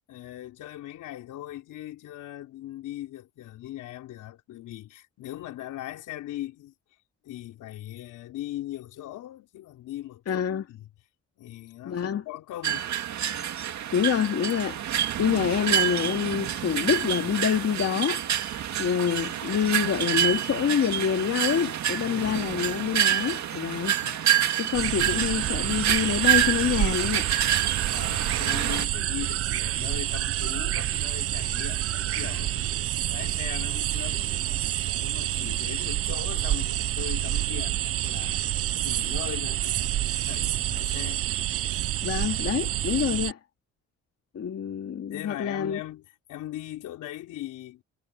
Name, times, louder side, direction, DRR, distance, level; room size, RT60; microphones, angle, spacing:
voice 1, 0.1-6.7 7.2-10.4 10.7-10.9 11.4-12.9 22.0-22.5 24.0-24.2 27.9-38.4 38.8-41.2 45.1-47.8, left 14 dB, 85° left, 4.5 m, -40 dB
voice 2, 10.3-10.6 11.9-12.2 13.9-14.8 15.2-18.2 18.8-24.0 24.5-27.3 42.0-43.4 44.3-45.8, left 8 dB, 55° left, 2.4 m, -26 dB
sound 1, 12.6-28.8, right 11 dB, 65° right, 2.3 m, -27 dB
sound 2, 24.7-43.3, right 13 dB, 50° right, 0.4 m, -28 dB
cardioid pair, 90°, 30 cm